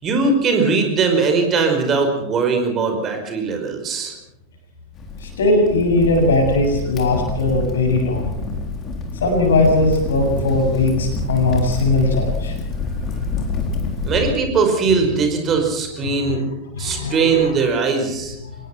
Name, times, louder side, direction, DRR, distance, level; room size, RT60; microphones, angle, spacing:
voice 1, 0.0-4.1 14.0-16.4 16.8-18.3, right 4 dB, 25° right, 5 dB, 5.1 m, -20 dB
Crackle, 5.0-14.2, left 4 dB, 30° left, 4.1 m, -27 dB
voice 2, 5.2-8.3 9.2-12.6 16.0-16.4 16.7-17.5, left 2 dB, 65° left, 3 dB, 7.3 m, -19 dB
25.5 x 20.0 x 6.0 m, 0.87 s
figure-of-eight pair, 90°, 0 cm